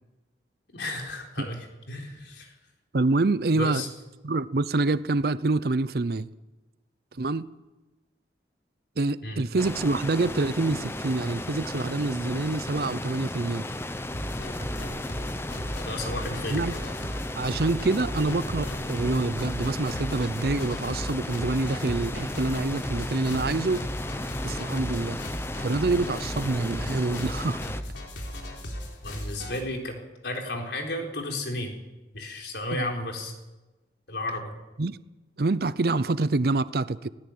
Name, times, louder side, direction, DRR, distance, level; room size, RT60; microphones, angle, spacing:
voice 1, 0.7-2.5 3.5-3.9 9.2-9.5 15.8-16.6 29.0-30.0 30.2-31.7 32.1-33.3 34.1-34.5, left 1 dB, 75° left, 2 dB, 4.1 m, -33 dB
voice 2, 2.9-3.8 4.2-6.3 7.2-7.5 9.0-13.7 16.5-16.8 17.4-23.9 24.4-25.2 25.6-27.6 32.7-32.8 34.8-35.0 35.4-37.1, right 3 dB, 60° right, 16 dB, 0.6 m, -26 dB
sound 1, 9.6-27.8, left 1 dB, 15° left, 0.8 m, -34 dB
sound 2, 14.1-29.6, equal, 90° left, 4.0 m, -37 dB
18.0 x 17.0 x 8.7 m, 1.1 s
head